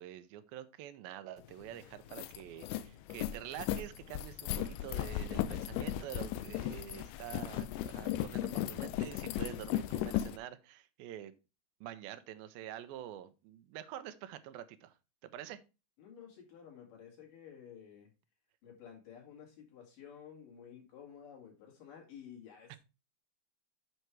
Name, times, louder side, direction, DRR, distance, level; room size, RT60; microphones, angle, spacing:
voice 1, 0.0-11.3 11.8-15.0 15.3-15.6 22.7-22.8, right 11 dB, 85° right, 12 dB, 2.4 m, -47 dB
sound 1, 1.5-1.6 1.9-10.4, left 12 dB, 85° left, 1.9 m, -36 dB
voice 2, 16.0-18.1 18.6-22.8, left 8 dB, 65° left, -1 dB, 4.0 m, -52 dB
8.0 x 5.5 x 4.6 m, 0.29 s
omnidirectional pair, 4.2 m